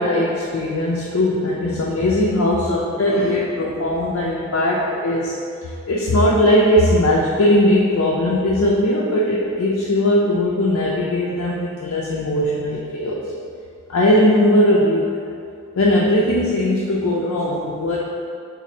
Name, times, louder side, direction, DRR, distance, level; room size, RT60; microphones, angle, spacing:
voice 1, 0.0-5.4 5.9-13.2 13.9-15.1 15.8-18.0, left 1 dB, 75° left, -5 dB, 0.4 m, -19 dB
2.7 x 2.5 x 4.1 m, 2.3 s
head